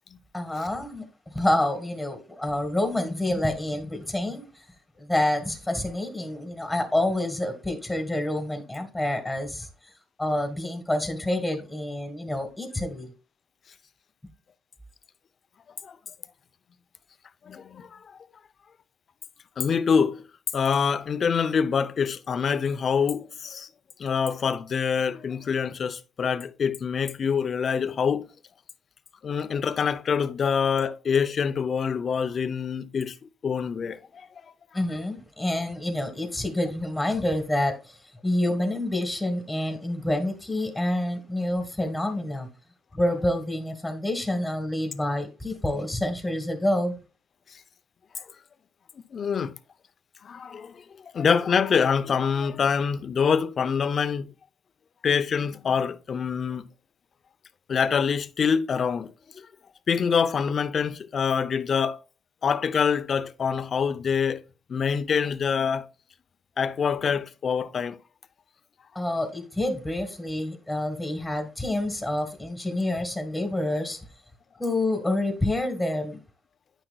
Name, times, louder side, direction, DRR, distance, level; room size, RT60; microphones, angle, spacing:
voice 1, 0.3-4.7 5.0-9.7 10.2-13.1 34.7-38.0 38.2-42.5 42.9-46.9 68.9-74.0 74.6-76.2, left 1 dB, 10° left, 1.5 m, -28 dB
voice 2, 17.5-18.1 19.6-20.2 20.5-23.7 24.0-28.3 29.2-33.2 33.4-34.3 47.5-47.6 48.2-48.3 49.1-49.5 50.2-54.3 55.0-56.7 57.7-59.5 59.9-62.0 62.4-64.4 64.7-65.9 66.6-68.0, left 6 dB, 50° left, 0.5 m, -25 dB
9.0 x 5.9 x 2.2 m
cardioid pair, 90°, 0 cm